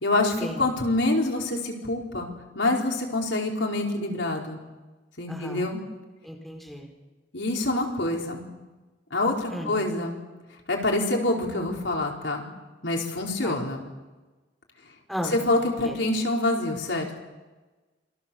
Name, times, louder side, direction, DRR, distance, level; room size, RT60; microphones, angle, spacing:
voice 1, 0.0-2.3 2.5-4.6 5.2-5.8 7.3-8.4 9.1-10.2 10.7-12.5 12.8-13.8 15.2-17.2, left 2 dB, 80° left, 0 dB, 4.7 m, -26 dB
voice 2, 5.3-5.6 6.2-6.9 9.5-9.7 13.4-13.5 15.1-15.3, equal, ahead, 1 dB, 4.5 m, -34 dB
28.0 x 23.0 x 7.2 m, 1.2 s
head